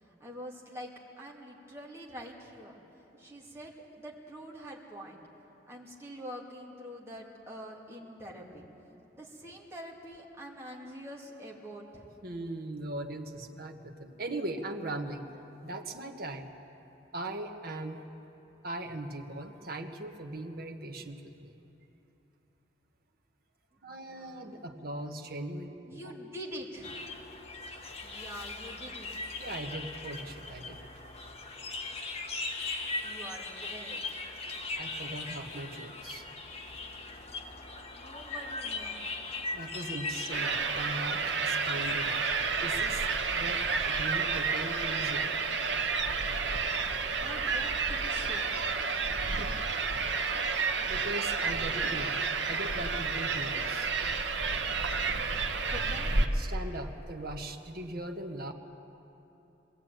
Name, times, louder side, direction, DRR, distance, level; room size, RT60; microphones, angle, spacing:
voice 1, 0.0-0.9 1.2-2.8 3.2-5.2 5.7-8.6 9.1-12.0 23.7-24.8 25.9-27.1 28.0-29.1 33.0-34.2 37.9-39.1 47.2-48.6 55.7-56.2, equal, 15° right, -3 dB, 2.6 m, -45 dB
voice 2, 12.2-15.3 15.6-16.5 17.1-18.0 18.6-21.5 23.8-25.7 26.0-26.1 29.4-30.9 34.7-36.2 39.5-42.2 42.6-43.1 43.3-45.3 49.4-49.5 50.2-50.5 50.9-53.9 56.3-58.5, right 1 dB, 55° right, 3 dB, 1.4 m, -39 dB
sound 1, 26.8-45.1, left 3 dB, 35° left, 1.4 m, -40 dB
sound 2, 40.3-56.3, right 4 dB, 80° right, 1.2 m, -30 dB
21.0 x 16.5 x 9.1 m, 3.0 s
head